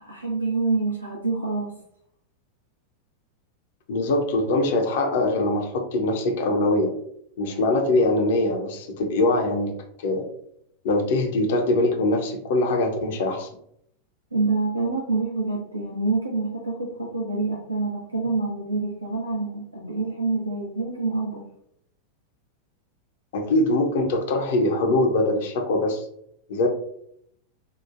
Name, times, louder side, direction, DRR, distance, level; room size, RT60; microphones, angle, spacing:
voice 1, 0.0-1.8 14.3-21.4, right 3 dB, 85° right, -1 dB, 0.4 m, -26 dB
voice 2, 3.9-6.9 7.4-10.3 10.8-13.5 23.3-26.1 26.5-26.7, left 2 dB, 55° left, 3 dB, 0.5 m, -23 dB
2.9 x 2.1 x 2.3 m, 0.70 s
figure-of-eight pair, 90°, 0 cm